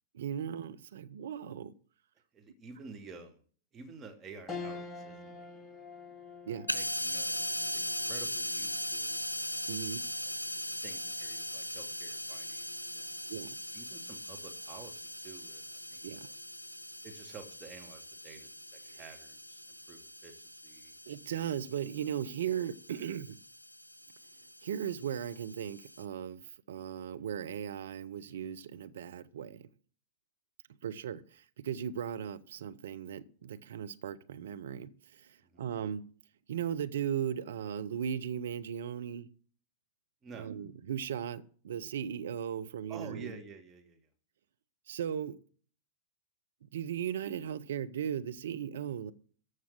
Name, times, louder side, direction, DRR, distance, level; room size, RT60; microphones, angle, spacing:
voice 1, 0.1-1.7 6.4-6.7 9.7-10.0 13.3-13.6 16.0-16.3 18.9-19.0 21.1-23.4 24.6-29.7 30.8-36.1 36.5-39.3 40.3-43.4 44.9-45.4 46.7-49.1, right 8 dB, 60° right, 0.9 m, -37 dB
voice 2, 2.3-3.4 3.7-5.5 5.7-5.8 6.7-9.3 10.2-10.3 10.8-13.2 13.7-16.3 17.0-19.6 19.9-20.9 35.4-35.6 40.2-40.5 42.9-44.1, right 4 dB, 20° right, 2.5 m, -51 dB
sound 1, 4.5-14.1 14.6-14.7 16.0-16.4, left 4 dB, 15° left, 2.0 m, -49 dB
sound 2, 6.7-26.0, left 1 dB, 85° left, 0.6 m, -40 dB
14.5 x 6.3 x 7.7 m
figure-of-eight pair, 95°, 0 cm